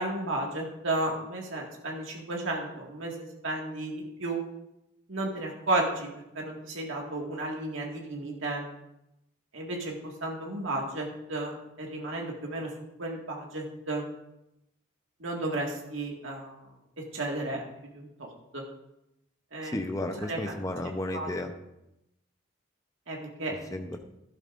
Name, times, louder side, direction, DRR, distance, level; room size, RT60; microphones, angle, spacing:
voice 1, 0.0-4.4 5.1-6.1 6.3-8.7 9.5-12.7 13.0-14.0 15.2-16.7 17.0-17.6 17.9-18.3 18.5-18.6 19.5-19.7 20.2-20.6 21.1-21.3 23.1-23.7, right 2 dB, 75° right, -1 dB, 1.9 m, -33 dB
voice 2, 19.6-21.5 23.7-24.0, left 1 dB, 15° left, 5 dB, 0.7 m, -33 dB
12.5 x 12.0 x 2.6 m, 0.86 s
head